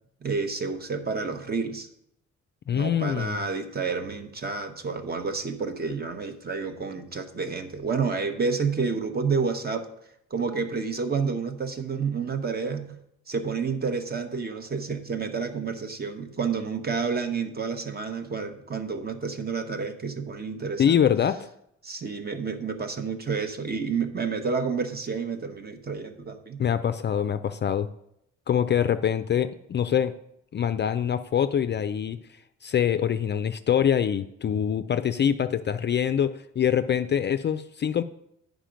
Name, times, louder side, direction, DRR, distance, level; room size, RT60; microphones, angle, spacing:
voice 1, 0.2-1.9 2.7-9.9 10.3-13.0 13.3-21.0 21.8-26.6, right 5 dB, 30° right, 8 dB, 1.0 m, -29 dB
voice 2, 2.7-3.4 20.8-21.5 26.6-27.9 28.5-30.2 30.5-32.2 32.6-38.0, left 8 dB, 35° left, 11 dB, 0.4 m, -24 dB
8.9 x 5.0 x 5.1 m, 0.76 s
cardioid pair, 90°, 30 cm